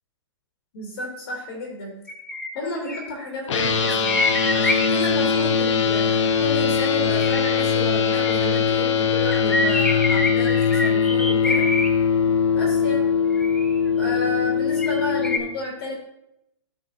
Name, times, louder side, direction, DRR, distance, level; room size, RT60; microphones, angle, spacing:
voice 1, 0.7-1.9 2.5-11.7 12.5-13.0 14.0-15.9, left 2 dB, 55° left, -3 dB, 3.1 m, -32 dB
sound 1, 2.1-3.1 3.8-5.3 7.2-8.5 9.3-11.9 13.3-13.9 14.8-15.4, left 2 dB, 5° left, 0.4 m, -26 dB
sound 2, 3.5-15.4, left 6 dB, 80° left, 1.1 m, -21 dB
15.0 x 5.4 x 2.7 m, 0.84 s
hypercardioid pair, 160°, 15 cm